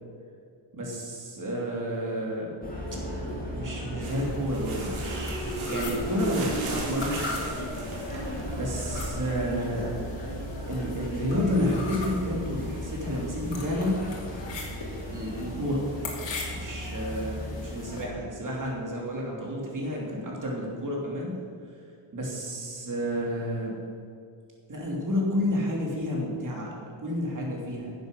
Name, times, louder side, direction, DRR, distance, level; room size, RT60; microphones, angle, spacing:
voice 1, 0.7-2.5 3.5-7.3 7.6-7.7 8.5-10.0 10.7-14.0 15.1-15.9 16.5-21.3 22.1-23.7 24.7-26.7 27.0-27.9, equal, 40° right, -2 dB, 2.9 m, -30 dB
sound 1, 2.6-18.1, equal, 15° left, 2.4 m, -35 dB
sound 2, 4.0-9.0, right 2 dB, 75° right, 2.8 m, -38 dB
sound 3, 4.5-18.0, left 3 dB, 60° left, 2.8 m, -41 dB
10.5 x 8.1 x 6.4 m, 2.4 s
wide cardioid pair, 135°, 49 cm